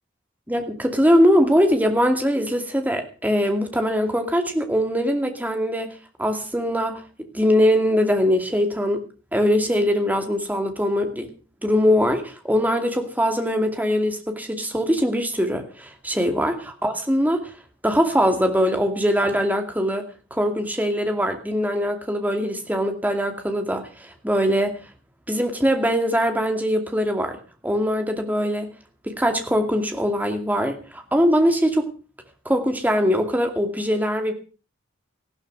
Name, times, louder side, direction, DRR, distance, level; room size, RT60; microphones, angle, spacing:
voice 1, 0.5-5.9 6.2-7.0 7.3-9.0 9.3-11.3 11.6-17.5 17.8-24.8 25.3-27.4 27.6-28.7 29.0-31.9 32.5-34.3, equal, 10° right, 5 dB, 2.4 m, -22 dB
15.5 x 12.5 x 6.2 m, 0.37 s
head